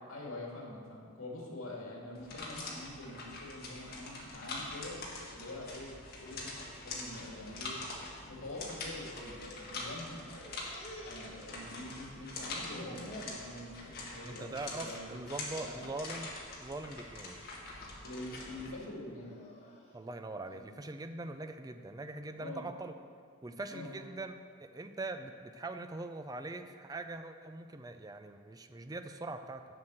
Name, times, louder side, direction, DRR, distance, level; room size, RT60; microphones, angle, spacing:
voice 1, 0.1-5.0 5.3-5.9 6.2-7.8 8.2-10.6 11.0-15.1 15.6-15.8 18.0-19.4 20.5-20.6 22.3-22.6 23.7-23.9, left 1 dB, 75° left, -2 dB, 2.3 m, -45 dB
sound 1, 2.2-18.7, left 2 dB, 45° left, 1.6 m, -44 dB
sound 2, 9.0-9.8 10.1-12.0 12.3-13.4 13.9-14.3 14.6-14.8 15.6-16.0 16.5-16.9 17.7-19.9, equal, 30° left, 1.5 m, -51 dB
voice 2, 14.3-16.3 16.6-17.6 19.9-22.9 23.4-24.3 24.6-29.6, right 2 dB, 20° right, 8 dB, 0.4 m, -42 dB
7.4 x 6.1 x 7.8 m, 2.1 s
head